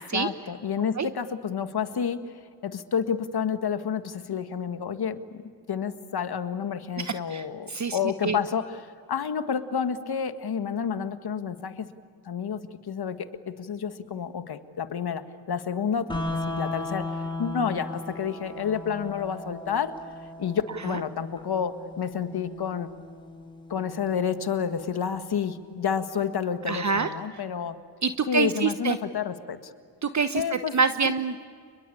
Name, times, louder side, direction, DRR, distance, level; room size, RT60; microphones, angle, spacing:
voice 1, 0.1-2.2 2.6-5.4 5.7-11.9 12.3-13.2 13.5-19.9 20.4-22.9 23.7-27.8 28.3-29.7 30.3-30.7 31.0-31.1, left 7 dB, 60° left, 9 dB, 1.9 m, -30 dB
voice 2, 7.0-8.4 20.9-21.0 26.7-27.1 28.0-29.0 30.0-30.4 30.7-31.4, right 5 dB, 40° right, 10 dB, 1.1 m, -26 dB
sound 1, 16.1-26.1, left 2 dB, 10° left, 4.6 m, -37 dB
30.0 x 22.0 x 8.7 m, 2.1 s
cardioid pair, 65°, 42 cm